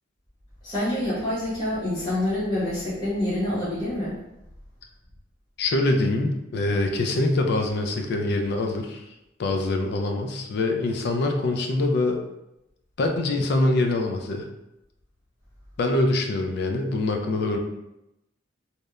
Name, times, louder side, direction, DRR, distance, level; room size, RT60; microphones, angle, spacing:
voice 1, 0.6-4.2, left 1 dB, 25° left, -9 dB, 0.8 m, -27 dB
voice 2, 5.6-9.1 9.4-12.2 13.0-14.5 15.8-17.6, left 2 dB, 60° left, 4 dB, 0.4 m, -24 dB
2.9 x 2.1 x 2.3 m, 0.90 s
head